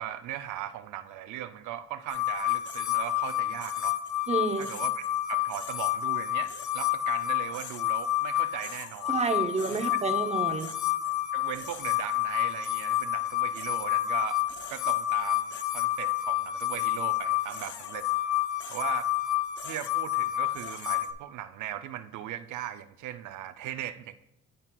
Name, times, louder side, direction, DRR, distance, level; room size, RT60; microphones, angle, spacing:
voice 1, 0.0-4.0 4.6-9.2 9.7-9.8 11.3-14.4 14.7-18.1 18.7-19.1 19.6-24.2, right 12 dB, 80° right, 10 dB, 0.5 m, -38 dB
sound 1, 2.1-21.1, left 14 dB, 75° left, 0.8 m, -29 dB
voice 2, 4.3-4.7 9.1-10.7, right 4 dB, 20° right, 7 dB, 0.7 m, -29 dB
12.0 x 4.2 x 2.3 m, 0.83 s
cardioid pair, 90°, 30 cm